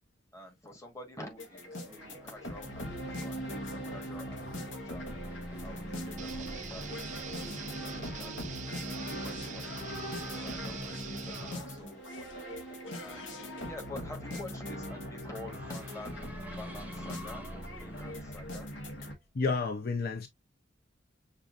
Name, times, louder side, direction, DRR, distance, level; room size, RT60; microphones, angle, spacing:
voice 1, 0.3-3.4 3.7-5.1 5.6-8.3 8.9-9.7 10.3-12.4 13.0-13.4 13.7-16.3 16.5-18.7, left 2 dB, 15° left, 1.3 m, -48 dB
Race car auto racing / Accelerating revving vroom, 1.3-19.3, right 1 dB, 10° right, 0.8 m, -52 dB
sound 1, 1.4-19.1, equal, 80° left, 1.0 m, -40 dB
sound 2, 6.2-11.6, right 7 dB, 40° right, 0.5 m, -44 dB
voice 2, 19.3-20.3, left 4 dB, 55° left, 0.6 m, -30 dB
6.7 x 2.5 x 2.4 m
head